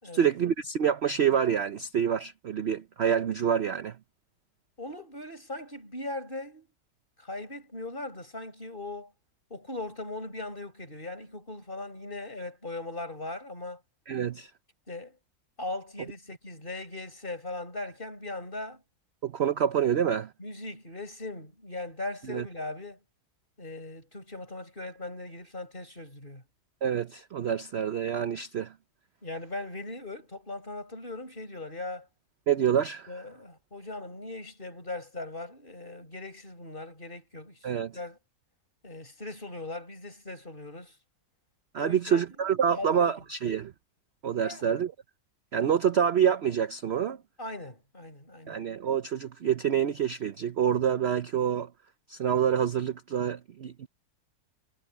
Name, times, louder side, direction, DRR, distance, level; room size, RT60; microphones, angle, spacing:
voice 1, 0.1-4.0 14.1-14.5 19.2-20.3 22.3-22.4 26.8-28.7 32.5-33.1 37.6-37.9 41.7-43.7 44.2-44.9 45.5-47.2 48.5-51.7 52.1-53.9, right 8 dB, 55° right, 0.8 m, -27 dB
voice 2, 4.8-6.7 7.2-9.1 9.5-13.8 14.9-15.2 15.6-18.8 20.4-23.0 23.6-26.4 29.2-32.1 33.1-38.2 38.8-40.9 41.8-42.2 42.7-43.1 44.4-44.8 47.4-48.6, left 2 dB, 30° left, 6.7 m, -39 dB
omnidirectional pair, 1.7 m